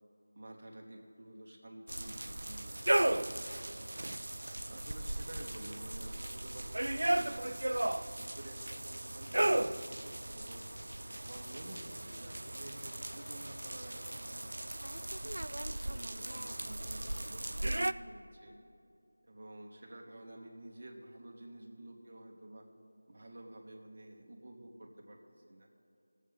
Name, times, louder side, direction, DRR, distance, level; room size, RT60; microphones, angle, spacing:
voice 1, 0.3-3.9 4.7-7.5 8.1-10.7 11.2-14.4 15.0-18.6 19.2-22.7 23.1-25.2 25.5-25.7, right 1 dB, 40° right, 1 dB, 1.2 m, -51 dB
sound 1, 1.9-17.9, right 1 dB, 80° right, 0.3 m, -36 dB
18.5 x 7.5 x 3.6 m, 2.6 s
figure-of-eight pair, 180°, 0 cm